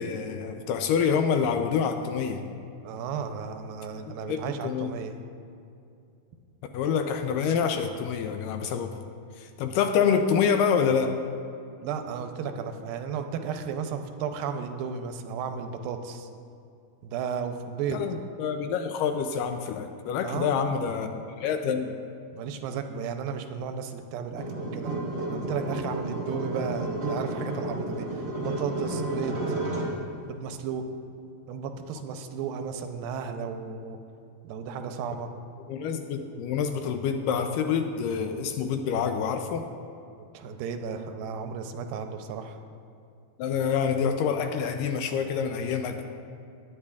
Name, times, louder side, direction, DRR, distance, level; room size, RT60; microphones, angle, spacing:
voice 1, 0.0-2.4 4.1-4.9 6.7-8.9 9.4-11.2 17.9-21.9 35.7-39.7 43.4-46.1, left 6 dB, 80° left, 6 dB, 2.0 m, -27 dB
voice 2, 2.8-5.1 11.8-16.3 17.0-18.0 20.2-20.7 21.0-21.2 22.3-24.9 25.3-29.4 30.3-30.9 31.5-34.0 34.4-35.3 40.2-42.6, right 6 dB, 90° right, 6 dB, 2.4 m, -34 dB
sound 1, 24.4-30.0, right 2 dB, 40° right, 1.3 m, -31 dB
18.5 x 10.0 x 2.4 m, 2.6 s
omnidirectional pair, 4.1 m